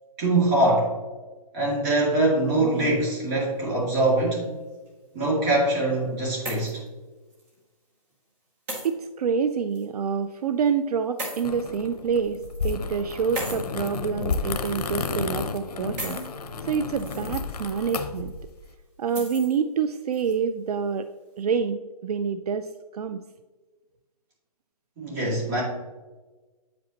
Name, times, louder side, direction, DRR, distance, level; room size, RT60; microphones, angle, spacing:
voice 1, 0.2-0.9 1.5-4.5 5.1-6.8 25.0-25.6, right 2 dB, 25° right, -4 dB, 2.1 m, -23 dB
sound 1, 2.4-3.0 4.0-4.7 5.9-6.9 7.3-7.5 8.7-8.9 9.8-9.9 11.2-11.4 12.2-12.6 13.4-13.6 14.6-15.1 16.0-16.3 16.8-17.3 17.7-17.8 19.1-19.6 20.1-20.3, right 1 dB, 10° right, 0.6 m, -36 dB
voice 2, 8.8-16.2 16.7-18.3 19.0-21.1 21.4-23.2, right 6 dB, 75° right, 10 dB, 0.4 m, -27 dB
sound 2, 11.4-18.6, left 4 dB, 80° left, 0.7 m, -32 dB
8.2 x 5.2 x 2.9 m, 1.3 s
hypercardioid pair, 165°, 20 cm